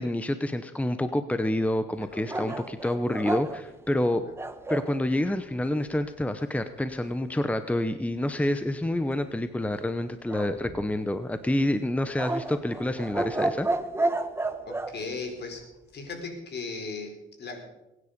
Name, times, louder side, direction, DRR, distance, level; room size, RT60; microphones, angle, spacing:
voice 1, 0.0-4.3 4.7-13.7, left 1 dB, 5° left, 10 dB, 0.8 m, -28 dB
voice 2, 2.1-2.6 4.2-4.3 14.7-15.7 15.9-17.7, left 4 dB, 60° left, 3 dB, 4.2 m, -37 dB
sound 1, 2.3-4.9 10.3-11.2 12.2-14.9, right 2 dB, 10° right, 1.2 m, -31 dB
21.5 x 9.9 x 5.2 m, 0.98 s
cardioid pair, 90°, 20 cm